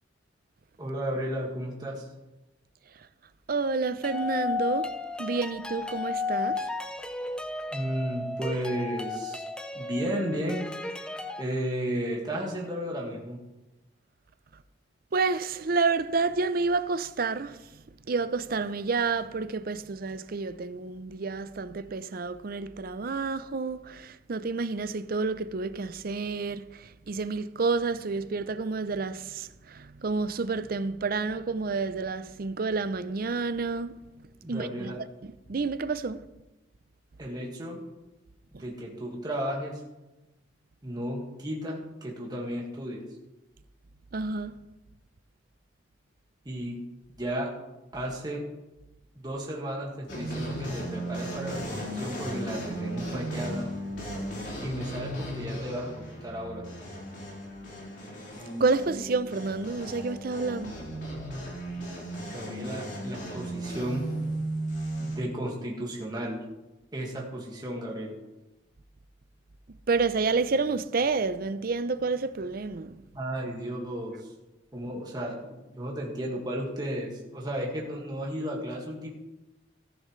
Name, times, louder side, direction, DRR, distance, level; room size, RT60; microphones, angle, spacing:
voice 1, 0.8-2.1 7.7-9.4 9.7-10.7 11.4-13.4 34.4-35.1 37.2-37.8 38.6-39.8 40.8-43.0 46.5-46.8 47.1-47.5 47.9-48.4 49.2-53.7 54.6-56.6 62.3-64.1 65.0-66.4 66.9-68.1 73.1-74.3 74.7-79.1, equal, 20° right, 1.8 m, -33 dB
voice 2, 3.5-4.9 5.2-6.6 15.1-17.6 18.1-26.7 27.1-33.9 34.5-35.0 35.5-36.2 38.5-38.6 44.1-44.5 58.6-60.7 69.9-73.0, right 4 dB, 50° right, 0.5 m, -29 dB
sound 1, 4.0-11.4, left 3 dB, 5° left, 0.5 m, -33 dB
sound 2, 50.1-65.1, right 1 dB, 65° left, 4.0 m, -36 dB
14.0 x 10.5 x 3.2 m
head